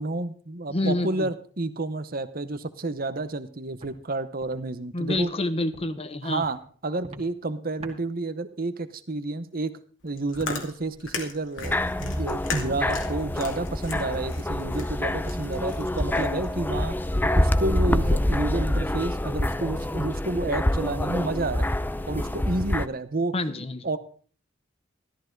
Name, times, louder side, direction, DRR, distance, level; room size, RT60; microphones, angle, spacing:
voice 1, 0.0-5.3 6.2-9.8 10.0-17.0 17.4-21.7 22.1-23.3 23.8-24.0, right 2 dB, 50° right, 12 dB, 1.0 m, -30 dB
voice 2, 0.7-1.3 4.9-6.4 23.3-23.9, left 1 dB, 30° left, 11 dB, 1.0 m, -28 dB
Walk footsteps, 3.1-3.2 3.7-3.9 4.4-4.5 5.1-5.2 5.7-6.0 6.4-6.6 7.0-7.3 7.8-8.0, right 2 dB, 35° right, 2.1 m, -43 dB
Chewing mastication, 10.0-16.5, left 4 dB, 75° left, 2.5 m, -37 dB
sound 1, 11.6-22.9, left 1 dB, 10° left, 0.5 m, -26 dB
13.5 x 13.5 x 3.9 m, 0.43 s
head